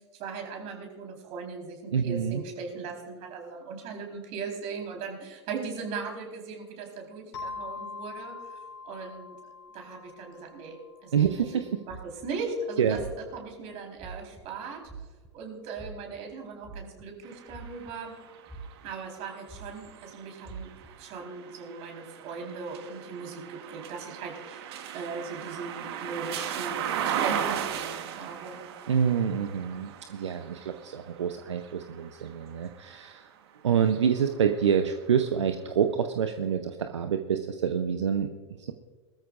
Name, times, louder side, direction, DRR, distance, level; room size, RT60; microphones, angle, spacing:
voice 1, 0.1-8.6 8.8-9.4 9.7-10.8 11.0-11.6 11.9-14.8 15.3-18.2 18.8-20.7 21.0-28.6, right 4 dB, 45° right, 2 dB, 4.2 m, -38 dB
voice 2, 1.9-2.4 11.1-11.7 12.8-13.0 28.9-33.3 33.6-38.3, right 7 dB, 80° right, 7 dB, 0.8 m, -27 dB
sound 1, 7.3-11.7, left 4 dB, 70° left, 4.1 m, -43 dB
sound 2, 11.9-12.4 12.9-13.4 14.0-14.4 14.8-15.3 15.7-16.2 16.6-17.1 17.5-18.1 18.5-18.9 19.5-19.9 20.4-20.9, right 4 dB, 5° right, 3.0 m, -44 dB
sound 3, 17.2-33.2 33.7-35.0, right 9 dB, 60° right, 1.4 m, -37 dB
21.5 x 13.5 x 2.5 m, 1.4 s
hypercardioid pair, 95°, 15 cm